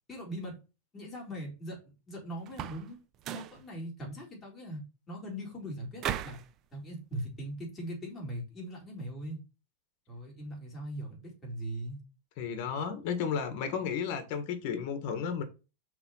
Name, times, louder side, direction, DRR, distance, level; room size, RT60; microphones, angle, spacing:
voice 1, 0.1-0.6 0.9-1.8 2.1-3.0 3.3-6.4 6.7-9.4 10.1-12.0, right 1 dB, 15° left, 3.9 m, -40 dB
sound 1, 2.5-2.9 3.2-3.6 6.0-6.5, right 10 dB, 30° right, 0.6 m, -36 dB
voice 2, 12.4-15.4, left 7 dB, 45° left, 1.9 m, -33 dB
5.9 x 4.8 x 5.7 m
supercardioid pair, 150°, 0 cm